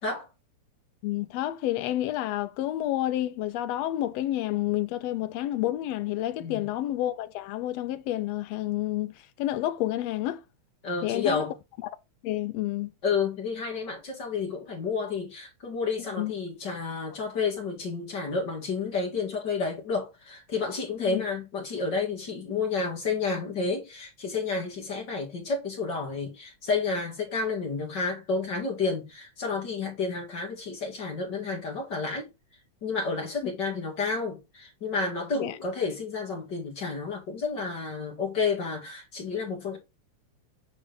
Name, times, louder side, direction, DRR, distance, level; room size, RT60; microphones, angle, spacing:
voice 1, 1.0-10.4 11.0-11.5 11.8-11.9 12.2-12.9 16.2-16.3 21.0-21.2 33.4-33.5 35.3-35.6, left 14 dB, 75° left, 1.6 m, -29 dB
voice 2, 10.8-11.5 13.0-32.3 32.8-39.8, left 4 dB, 40° left, 2.2 m, -30 dB
8.8 x 3.8 x 3.8 m
omnidirectional pair, 3.4 m